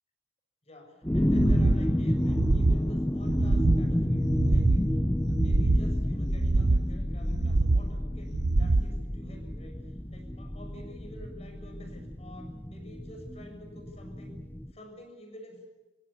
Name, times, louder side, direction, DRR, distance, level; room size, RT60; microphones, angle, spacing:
voice 1, 0.6-4.9 5.2-14.4 14.7-15.6, left 1 dB, 35° left, 4 dB, 6.7 m, -47 dB
sound 1, 1.0-14.7, left 1 dB, 10° left, 0.9 m, -30 dB
sound 2, 1.3-1.8 2.2-2.8 3.2-3.8 4.2-4.8 5.3-5.9 6.3-6.9 7.3-7.9 8.3-8.9, right 2 dB, 70° right, 0.8 m, -25 dB
27.5 x 17.0 x 8.7 m, 1.1 s
head